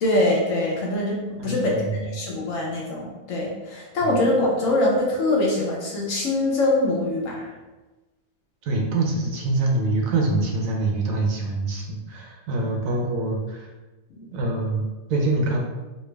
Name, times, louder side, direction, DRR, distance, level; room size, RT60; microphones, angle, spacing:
voice 1, 0.0-7.5 14.1-14.3, left 1 dB, 65° left, -2 dB, 0.8 m, -23 dB
voice 2, 1.4-2.2 4.0-4.1 8.6-13.7 14.3-15.6, right 2 dB, 70° right, 0 dB, 0.9 m, -25 dB
3.3 x 2.3 x 3.2 m, 1.2 s
omnidirectional pair, 1.8 m